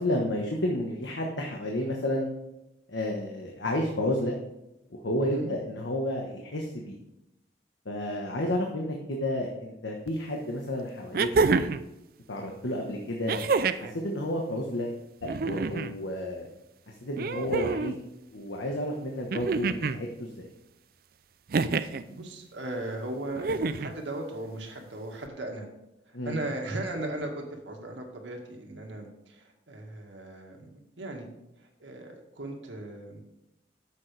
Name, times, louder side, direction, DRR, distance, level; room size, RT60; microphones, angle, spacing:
voice 1, 0.0-2.3 2.9-4.4 4.9-7.0 7.8-11.3 12.3-13.4 13.8-16.5 17.0-18.0 18.3-20.5 26.1-26.4, left 1 dB, 90° left, 0 dB, 1.2 m, -31 dB
voice 2, 5.2-5.5 22.1-25.7 26.1-30.7 31.0-31.3 31.6-33.2, right 1 dB, 90° right, 2 dB, 1.8 m, -37 dB
sound 1, 10.1-10.2 11.1-11.9 13.3-13.9 15.2-15.9 17.2-18.0 19.3-20.0 21.5-22.0 23.4-23.9 25.3-25.4, right 4 dB, 50° right, 0.4 m, -27 dB
9.8 x 7.5 x 3.4 m, 0.92 s
head